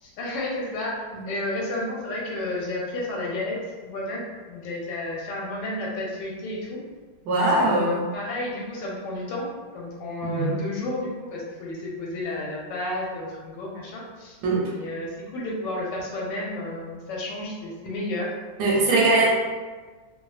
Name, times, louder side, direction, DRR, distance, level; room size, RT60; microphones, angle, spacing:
voice 1, 0.0-3.6 3.8-4.2 4.5-6.8 7.3-9.5 9.7-14.4 14.6-18.3 18.9-19.1, left 2 dB, 75° left, -3 dB, 1.2 m, -31 dB
voice 2, 7.2-8.1 10.2-10.5 14.4-14.7 18.6-19.3, right 2 dB, 75° right, -3 dB, 1.1 m, -21 dB
3.0 x 2.2 x 2.3 m, 1.4 s
omnidirectional pair, 2.0 m